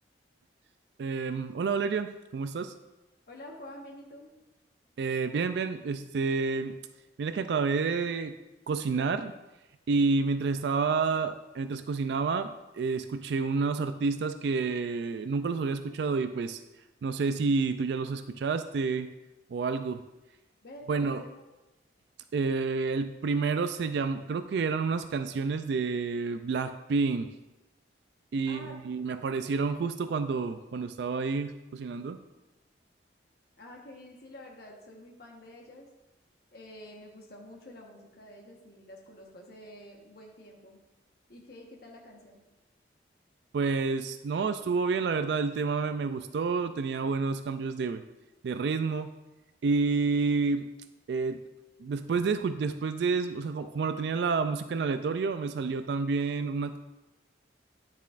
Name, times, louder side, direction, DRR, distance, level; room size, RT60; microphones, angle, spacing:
voice 1, 1.0-2.7 5.0-6.8 7.2-8.3 8.7-9.3 9.9-16.6 17.0-19.1 19.5-20.0 20.9-21.2 22.3-27.3 28.3-32.2 43.5-48.0 48.4-49.1 49.6-50.7 51.1-51.4 51.8-56.8, right 4 dB, 65° right, 10 dB, 0.3 m, -29 dB
voice 2, 3.3-4.3 8.9-9.1 20.6-21.3 28.4-28.8 29.1-29.6 33.6-35.9 36.5-40.8 41.3-42.4, left 1 dB, 55° left, -1 dB, 1.2 m, -48 dB
9.7 x 7.0 x 2.5 m, 1.0 s
head